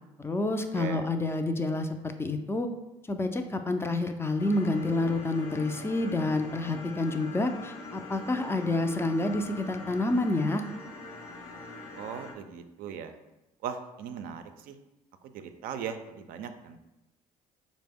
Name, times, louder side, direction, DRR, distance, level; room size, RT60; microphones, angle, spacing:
voice 1, 0.2-2.7 3.1-10.6, left 2 dB, 15° left, 6 dB, 0.4 m, -28 dB
voice 2, 0.7-1.1 12.0-13.1 13.6-14.8 15.2-16.8, right 7 dB, 70° right, 8 dB, 0.4 m, -38 dB
sound 1, 4.4-12.3, left 2 dB, 80° left, 0.6 m, -43 dB
4.0 x 2.0 x 3.4 m, 0.97 s
supercardioid pair, 65°, 15 cm